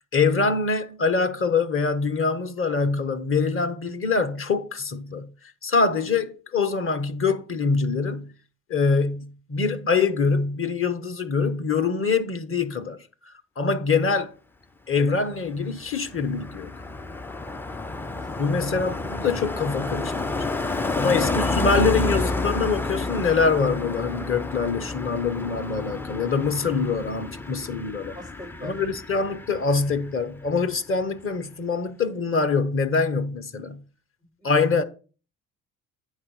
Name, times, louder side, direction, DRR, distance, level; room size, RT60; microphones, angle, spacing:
voice 1, 0.0-5.3 5.6-8.3 8.7-13.0 13.6-14.3 14.9-16.7 18.4-20.7 21.0-28.2 28.6-33.8 34.4-34.8, left 4 dB, 30° left, 1.0 m, -24 dB
Car passing by, 15.4-30.2 30.5-30.8, left 3 dB, 5° left, 0.3 m, -30 dB
voice 2, 28.1-28.8 34.4-34.7, left 1 dB, 70° left, 5.0 m, -42 dB
8.8 x 4.1 x 5.5 m
figure-of-eight pair, 45°, 41 cm